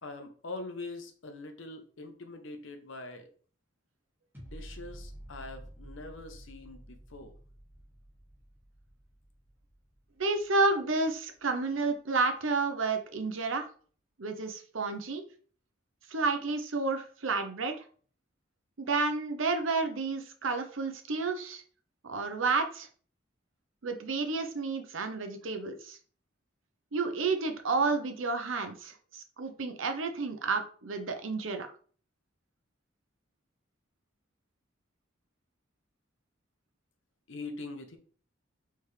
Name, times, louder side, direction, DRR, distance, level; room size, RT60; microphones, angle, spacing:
voice 1, 0.0-3.3 4.4-7.3 37.3-38.0, left 2 dB, 75° left, 6 dB, 0.9 m, -43 dB
sound 1, 4.3-11.4 11.8-11.9, equal, 10° right, 1.4 m, -50 dB
voice 2, 10.2-13.7 14.2-15.2 16.1-17.8 18.8-21.6 22.0-22.9 23.8-26.0 26.9-31.7, right 3 dB, 80° right, 6 dB, 0.8 m, -30 dB
4.6 x 3.5 x 3.2 m, 0.43 s
head